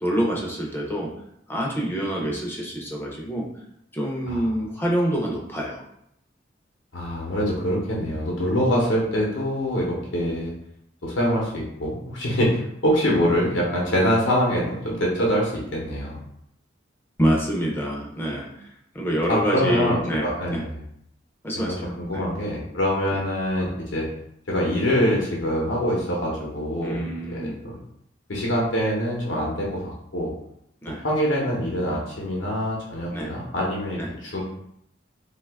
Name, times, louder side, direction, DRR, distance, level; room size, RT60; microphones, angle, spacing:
voice 1, 0.0-1.1 1.5-3.5 3.9-5.8 17.2-18.7 18.9-20.6 21.4-22.2 26.8-27.6 30.8-31.0 33.1-33.3 34.0-34.1, equal, 10° left, -2 dB, 0.4 m, -26 dB
voice 2, 6.9-10.5 11.0-16.2 19.3-20.8 21.5-24.1 24.5-27.0 27.3-27.8 28.3-30.3 31.0-34.4, equal, 80° left, -3 dB, 0.7 m, -24 dB
2.8 x 2.3 x 3.3 m, 0.75 s
head